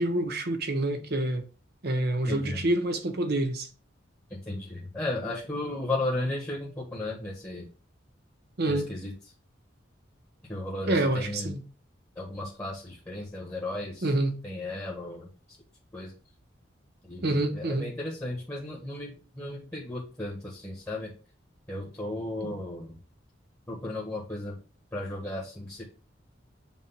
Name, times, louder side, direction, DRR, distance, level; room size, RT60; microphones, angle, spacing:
voice 1, 0.0-1.4 1.8-3.7 8.6-8.9 10.8-11.6 14.0-14.4 17.2-17.9 22.4-22.5, right 1 dB, 55° right, 1.1 m, -27 dB
voice 2, 2.3-2.6 4.3-7.7 8.7-9.1 10.5-11.5 12.1-14.1 14.4-15.3 15.9-16.1 17.0-21.1 21.7-23.0 23.7-24.6 24.9-25.8, left 2 dB, 15° left, 1.5 m, -35 dB
7.5 x 2.6 x 5.8 m
head